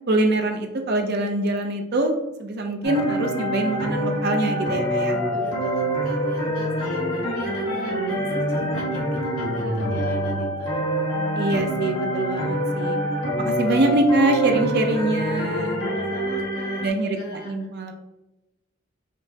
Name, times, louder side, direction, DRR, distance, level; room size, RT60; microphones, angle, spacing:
voice 1, 0.1-5.2 11.4-13.0 13.4-15.8 16.8-17.9, right 2 dB, 50° right, 4 dB, 0.5 m, -24 dB
sound 1, 2.8-16.9, equal, 65° left, 1.2 m, -25 dB
voice 2, 5.3-10.8 15.8-17.5, equal, 85° left, -3 dB, 1.4 m, -38 dB
5.1 x 2.1 x 2.7 m, 0.96 s
head